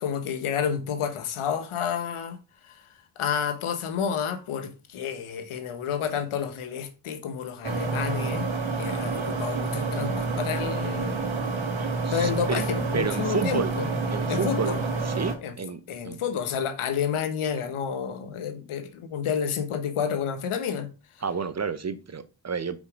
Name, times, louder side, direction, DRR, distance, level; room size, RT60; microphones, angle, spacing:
voice 1, 0.0-2.4 2.7-2.8 3.2-8.5 8.8-11.3 12.1-13.9 14.3-14.8 15.4-15.5 15.9-20.9, left 7 dB, 85° left, 1.2 m, -30 dB
sound 1, 7.6-15.3, right 3 dB, 70° right, 1.8 m, -28 dB
voice 2, 12.0-12.6 12.9-13.7 14.1-14.7 15.0-16.2 21.2-22.8, right 5 dB, 35° right, 0.8 m, -31 dB
5.4 x 4.9 x 5.1 m
cardioid pair, 65°, 48 cm